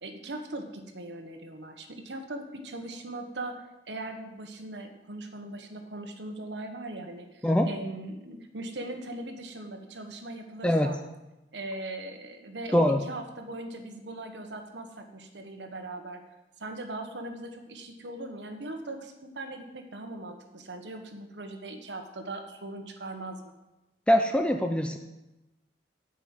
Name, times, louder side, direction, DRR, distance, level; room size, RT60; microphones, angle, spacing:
voice 1, 0.0-11.0 11.5-16.2 16.6-23.5, right 2 dB, 90° right, 5 dB, 1.3 m, -40 dB
voice 2, 24.1-25.0, left 1 dB, 5° left, 5 dB, 0.5 m, -23 dB
9.8 x 5.5 x 7.8 m, 0.98 s
head